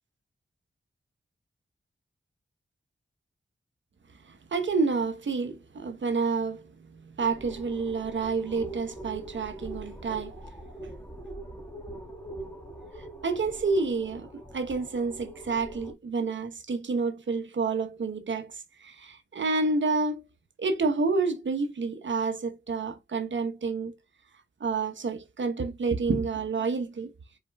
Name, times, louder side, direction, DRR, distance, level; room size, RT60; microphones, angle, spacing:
voice 1, 4.3-10.4 13.0-20.2 20.6-24.0 24.6-27.1, right 4 dB, 65° right, 1.0 m, -29 dB
sound 1, 7.2-15.9, right 1 dB, 10° left, 1.7 m, -42 dB
5.0 x 4.4 x 2.3 m
cardioid pair, 40°, 21 cm